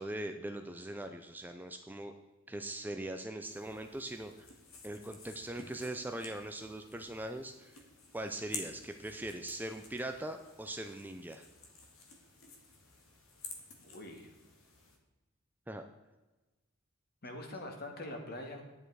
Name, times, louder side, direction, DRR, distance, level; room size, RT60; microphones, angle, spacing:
voice 1, 0.0-2.1 2.5-4.3 4.8-7.8 8.1-11.4 15.7-15.8, right 1 dB, 10° right, 6 dB, 0.5 m, -41 dB
sound 1, 3.4-15.0, left 4 dB, 80° left, 2.0 m, -51 dB
voice 2, 13.8-14.3 17.2-18.6, left 1 dB, 50° left, 3 dB, 2.0 m, -44 dB
10.5 x 9.1 x 4.8 m, 1.1 s
head